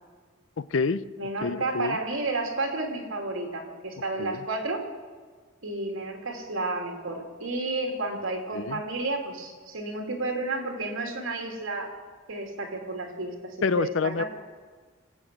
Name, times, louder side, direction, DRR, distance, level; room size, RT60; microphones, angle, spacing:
voice 1, 0.6-1.0 1.4-2.0 4.2-4.4 8.5-8.8 13.6-14.2, left 4 dB, 70° left, 14 dB, 0.5 m, -27 dB
voice 2, 1.2-4.8 5.6-11.9 12.3-14.3, right 2 dB, 80° right, 2 dB, 2.8 m, -31 dB
24.0 x 8.7 x 6.2 m, 1.5 s
head